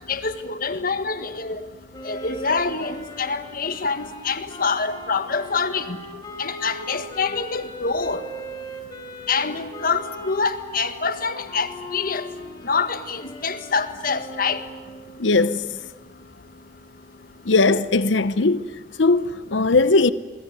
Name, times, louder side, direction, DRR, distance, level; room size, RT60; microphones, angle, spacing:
voice 1, 0.1-1.6 2.0-6.0 6.4-8.2 9.3-12.3 12.6-14.6, left 4 dB, 50° left, 1.6 m, -26 dB
Wind instrument woodwind instrument, 1.9-15.3, equal, 20° left, 4.1 m, -39 dB
voice 2, 15.2-15.7 17.4-18.7 19.0-20.1, left 3 dB, 85° left, 0.9 m, -19 dB
29.0 x 21.0 x 9.6 m
head